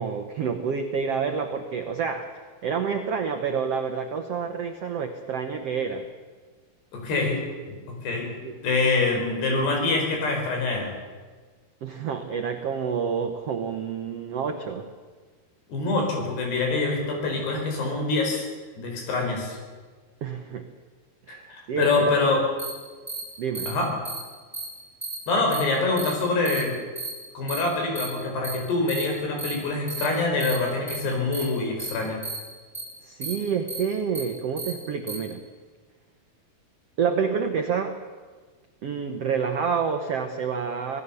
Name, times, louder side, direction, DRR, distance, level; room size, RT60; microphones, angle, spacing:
voice 1, 0.0-6.1 8.4-8.6 11.8-14.9 20.2-20.7 21.3-22.1 23.4-23.8 33.0-35.4 37.0-38.0 38.8-41.0, right 6 dB, 80° right, 5 dB, 1.4 m, -28 dB
voice 2, 6.9-7.4 7.7-8.3 8.6-10.9 15.7-18.5 18.8-19.6 21.3-22.5 23.7-23.9 25.3-26.7 27.4-32.2, left 3 dB, 85° left, 2 dB, 6.9 m, -25 dB
sound 1, 22.6-22.7 23.1-23.2 23.5-23.7 24.0-24.2 24.5-24.6 25.0-25.1 25.5-25.6 26.0-26.1 26.4-26.6 27.0-27.1 27.5-27.6 27.9-28.1 28.4-28.5 28.9-29.0 29.4-29.5 29.9-30.0 30.4-30.5 30.9-31.0 31.3-31.4 31.8-31.9 32.2-32.4 32.7-32.8 33.2-33.3 33.7-33.8 34.1-34.2 34.6-34.7 35.1-35.2, right 3 dB, ahead, 6.3 m, -33 dB
26.5 x 18.0 x 7.0 m, 1.5 s
omnidirectional pair, 4.6 m